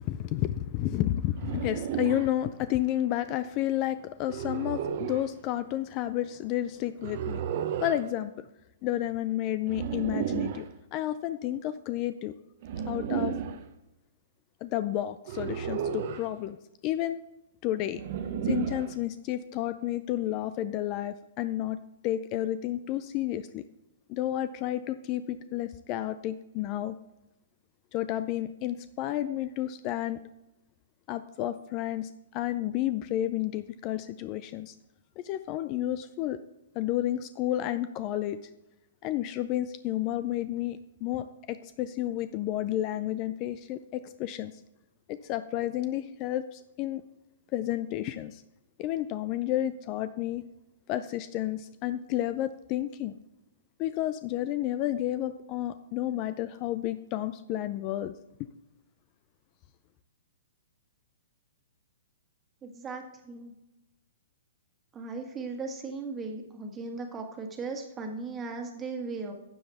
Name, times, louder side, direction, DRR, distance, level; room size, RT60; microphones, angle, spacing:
voice 1, 0.0-7.4 7.8-8.5 8.8-10.7 10.9-12.3 12.9-13.4 14.6-16.6 16.8-17.2 17.6-18.0 18.4-23.6 24.1-27.0 27.9-30.2 31.1-34.7 35.2-36.4 36.7-38.4 39.0-44.6 45.1-47.0 47.5-48.4 48.8-50.4 50.9-53.1 53.8-58.1 58.4-58.5, left 13 dB, 30° left, 12 dB, 0.4 m, -31 dB
sound 1, 1.4-2.3 4.3-5.3 7.0-8.0 9.7-10.7 12.6-13.6 15.3-16.3 18.0-19.0, right 8 dB, 50° right, 0.8 m, -32 dB
voice 2, 62.6-63.5 64.9-69.3, right 4 dB, 15° right, 3 dB, 1.6 m, -37 dB
12.0 x 7.8 x 3.5 m, 0.93 s
hypercardioid pair, 150°, 0 cm